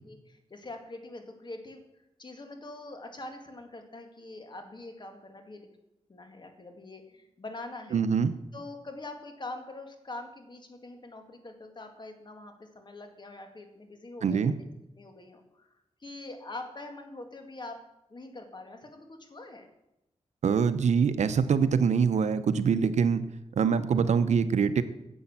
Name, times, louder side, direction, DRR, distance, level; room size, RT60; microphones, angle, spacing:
voice 1, 0.1-1.8 2.2-5.7 6.1-8.0 8.5-14.7 15.0-15.7 16.0-17.8 18.1-19.7, left 2 dB, 40° left, 5 dB, 2.0 m, -44 dB
voice 2, 7.9-8.3 14.2-14.5 20.4-23.3 23.6-24.8, right 6 dB, 85° right, 12 dB, 0.7 m, -24 dB
10.0 x 7.9 x 7.3 m, 0.89 s
wide cardioid pair, 80°, 12 cm